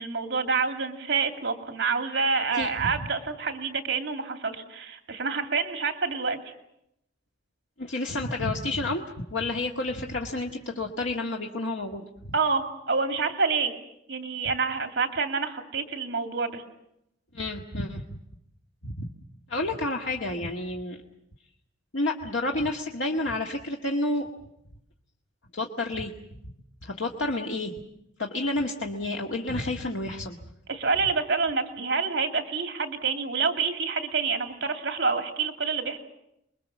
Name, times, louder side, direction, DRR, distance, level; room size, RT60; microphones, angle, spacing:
voice 1, 0.0-6.4 12.3-13.7 14.1-16.6 30.7-36.0, right 4 dB, 65° right, 5 dB, 2.5 m, -27 dB
voice 2, 7.8-12.0 17.3-18.0 18.8-19.1 19.5-21.0 21.9-24.3 25.5-26.1 26.8-27.7 28.2-30.4, left 2 dB, 90° left, 0 dB, 1.9 m, -30 dB
28.5 x 22.0 x 7.3 m, 0.80 s
head